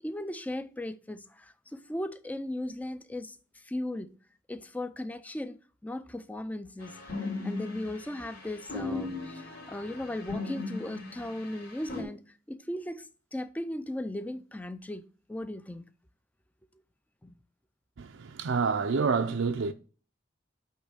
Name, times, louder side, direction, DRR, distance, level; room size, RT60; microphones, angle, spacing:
voice 1, 0.0-4.1 4.5-15.0 15.3-15.9 17.2-17.4, left 1 dB, 10° left, 0.4 m, -37 dB
sound 1, 6.8-12.0, left 3 dB, 50° left, 2.7 m, -38 dB
voice 2, 18.0-19.7, right 5 dB, 70° right, 0.5 m, -28 dB
8.4 x 3.2 x 6.2 m
head